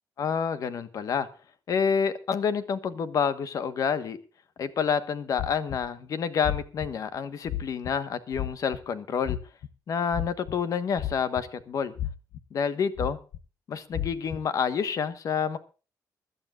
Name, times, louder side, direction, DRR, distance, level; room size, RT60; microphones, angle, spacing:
voice 1, 0.2-1.3 1.7-4.2 4.6-9.4 9.9-11.9 12.5-13.2 13.7-15.6, left 6 dB, 50° left, 13 dB, 1.3 m, -28 dB
sound 1, 5.4-5.9 6.4-6.9 7.5-7.9 8.3-8.8 9.2-9.7 10.1-10.6 11.0-11.6 12.0-12.4 13.0-13.4 13.9-14.4, left 12 dB, 75° left, 1.0 m, -32 dB
24.0 x 12.0 x 2.4 m, 0.35 s
wide cardioid pair, 175°, 7 cm